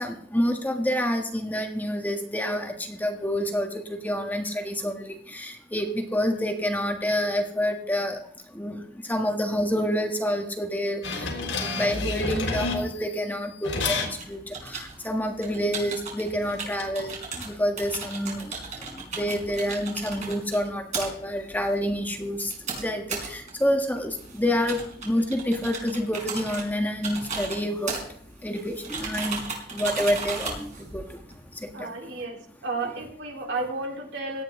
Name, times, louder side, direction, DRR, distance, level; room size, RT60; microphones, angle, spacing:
voice 1, 0.0-8.2 8.5-8.8 9.1-27.9 28.4-29.4 29.7-31.2 31.8-31.9 32.8-32.9, equal, 10° left, 3 dB, 1.5 m, -28 dB
sound 1, 11.0-13.2 13.6-14.1 16.3-16.9, left 3 dB, 85° left, 3.7 m, -29 dB
sound 2, 14.2-31.7, right 4 dB, 40° right, 4.6 m, -37 dB
voice 2, 31.7-34.4, right 3 dB, 70° right, 0 dB, 3.7 m, -32 dB
17.5 x 12.0 x 3.7 m, 0.63 s
head